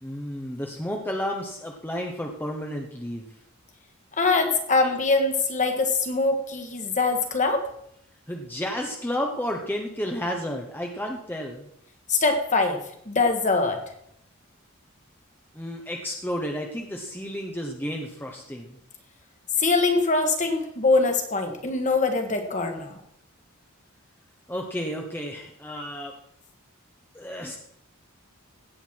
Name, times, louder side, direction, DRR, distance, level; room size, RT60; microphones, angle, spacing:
voice 1, 0.0-3.2 8.3-11.7 15.5-18.8 24.5-26.1 27.1-27.6, equal, 10° left, 1 dB, 1.0 m, -32 dB
voice 2, 4.2-7.7 12.1-12.8 13.0-13.8 19.6-22.9, left 3 dB, 35° left, 5 dB, 1.8 m, -23 dB
16.5 x 8.1 x 4.6 m, 0.73 s
head